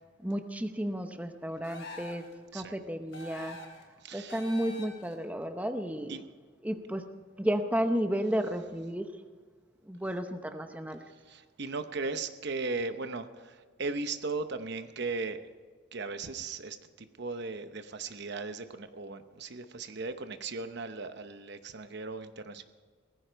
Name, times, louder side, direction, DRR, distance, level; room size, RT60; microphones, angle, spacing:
voice 1, 0.2-2.3 2.5-3.6 4.1-6.2 6.6-7.0 7.4-9.1 9.8-11.0, equal, 5° right, 7 dB, 0.8 m, -32 dB
sound 1, 1.6-2.3 3.1-3.8 4.3-5.1, left 2 dB, 65° left, 3.9 m, -45 dB
voice 2, 4.0-4.4 6.1-6.2 11.3-15.4 15.9-22.6, right 3 dB, 55° right, 9 dB, 0.9 m, -37 dB
18.0 x 15.0 x 4.6 m, 1.5 s
head